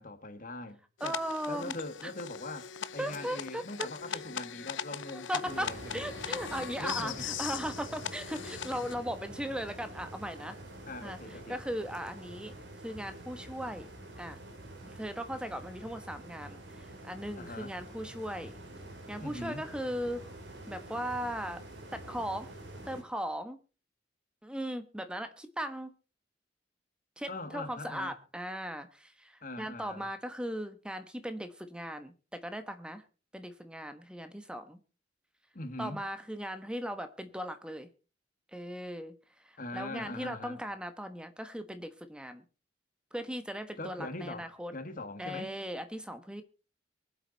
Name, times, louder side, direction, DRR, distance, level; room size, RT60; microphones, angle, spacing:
voice 1, 0.0-1.2 1.5-6.1 6.8-7.3 10.9-11.6 17.4-17.8 19.2-19.7 27.3-28.1 29.4-30.1 35.5-36.0 39.6-40.6 43.8-45.5, left 2 dB, 45° left, 1.8 m, -42 dB
sound 1, 1.0-8.9, left 8 dB, 80° left, 0.7 m, -40 dB
voice 2, 1.0-1.7 3.0-4.2 5.1-10.6 11.0-11.2 11.5-12.5 12.8-13.9 14.2-14.4 14.8-18.5 19.1-20.2 20.7-21.6 21.9-22.5 22.8-23.6 24.4-25.9 27.2-33.0 33.3-34.8 35.8-37.9 38.5-39.1 39.4-42.4 43.1-44.7 45.2-46.4, equal, 5° right, 1.3 m, -38 dB
sound 2, 5.5-23.0, right 1 dB, 65° right, 3.6 m, -47 dB
24.0 x 8.0 x 4.1 m
head